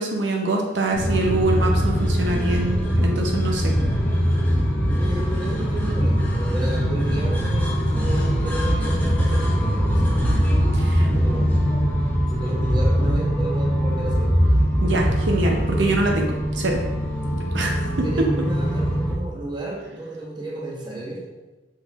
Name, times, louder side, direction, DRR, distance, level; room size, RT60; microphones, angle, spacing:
voice 1, 0.0-3.7 10.7-11.1 14.8-16.8 17.5-17.8, right 2 dB, 70° right, 1 dB, 0.6 m, -24 dB
sound 1, 0.9-19.1, equal, 10° left, 0.7 m, -22 dB
voice 2, 4.8-10.1 11.1-11.6 12.3-14.4 18.0-21.3, right 1 dB, 25° right, -2 dB, 0.8 m, -33 dB
5.5 x 3.9 x 2.4 m, 1.1 s
head